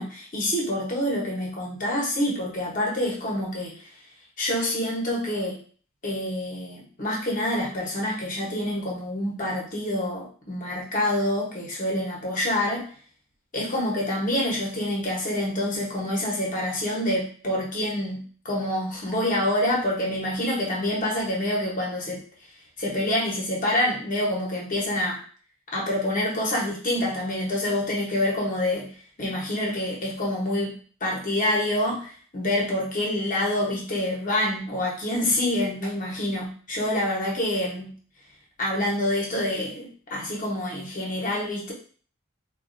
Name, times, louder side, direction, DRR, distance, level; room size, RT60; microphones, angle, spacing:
voice 1, 0.0-3.8 4.4-5.6 6.0-12.8 13.5-22.2 22.8-25.2 25.7-28.9 29.2-30.7 31.0-37.9 38.6-41.7, left 1 dB, 40° left, -2 dB, 0.9 m, -27 dB
3.8 x 2.3 x 2.5 m, 0.43 s
head